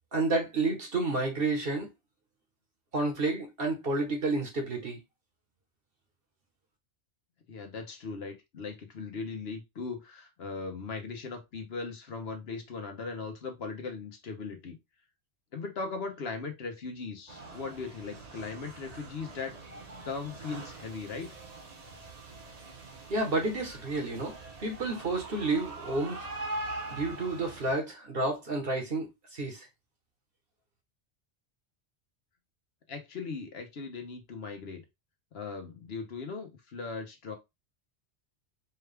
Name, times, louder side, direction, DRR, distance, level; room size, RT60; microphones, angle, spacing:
voice 1, 0.1-1.9 2.9-5.0 23.1-26.2 26.9-29.7, right 2 dB, 55° right, 1.4 m, -30 dB
voice 2, 7.5-14.8 15.5-19.6 20.0-21.3 32.9-34.8 35.3-37.4, left 4 dB, 65° left, 1.1 m, -38 dB
sound 1, 17.3-27.7, right 2 dB, 40° right, 0.9 m, -43 dB
4.6 x 2.3 x 3.3 m
omnidirectional pair, 1.2 m